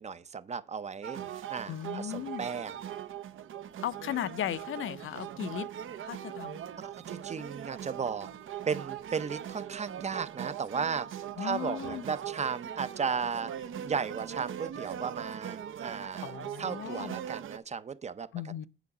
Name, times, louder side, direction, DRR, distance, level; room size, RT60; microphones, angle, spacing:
voice 1, 0.0-2.8 6.8-8.3 8.7-16.3 16.6-18.7, right 6 dB, 35° right, 0.5 m, -35 dB
sound 1, 1.0-17.6, right 10 dB, 75° right, 0.7 m, -41 dB
voice 2, 1.7-2.4 3.8-5.7 6.0-6.6 11.4-12.0 16.2-17.2 18.3-18.7, left 11 dB, 75° left, 0.6 m, -36 dB
9.4 x 5.6 x 4.9 m
wide cardioid pair, 135°, 21 cm